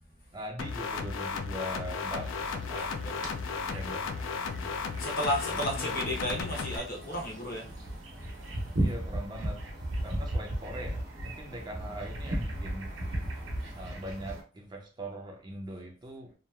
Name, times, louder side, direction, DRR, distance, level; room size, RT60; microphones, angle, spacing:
voice 1, 0.3-3.0 3.6-4.1 4.4-4.7 5.5-6.2 8.8-9.7 10.0-12.9 13.7-16.3, equal, 20° right, 0.4 m, -41 dB
sound 1, 0.6-6.8, left 5 dB, 75° left, 0.3 m, -35 dB
sound 2, 2.0-14.4, right 1 dB, 85° right, 0.8 m, -37 dB
voice 2, 2.7-3.2 4.9-7.7, equal, 50° left, 0.8 m, -33 dB
2.8 x 2.3 x 2.3 m
head